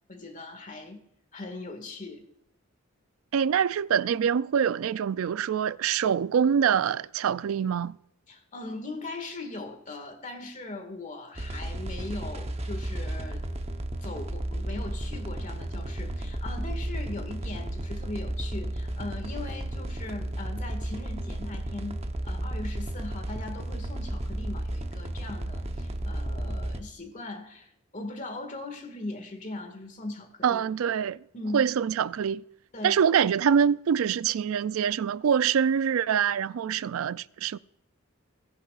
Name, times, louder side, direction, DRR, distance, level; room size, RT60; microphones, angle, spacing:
voice 1, 0.1-1.0 1.3-2.3 8.3-13.4 14.0-30.6 31.3-31.7 32.7-33.0, left 2 dB, 40° left, 1.9 m, -39 dB
voice 2, 3.3-8.0 30.4-31.2 31.5-32.4 32.8-37.6, right 7 dB, 90° right, 0.4 m, -25 dB
sound 1, 11.4-26.8, right 1 dB, 30° right, 0.9 m, -33 dB
18.5 x 10.5 x 2.4 m
head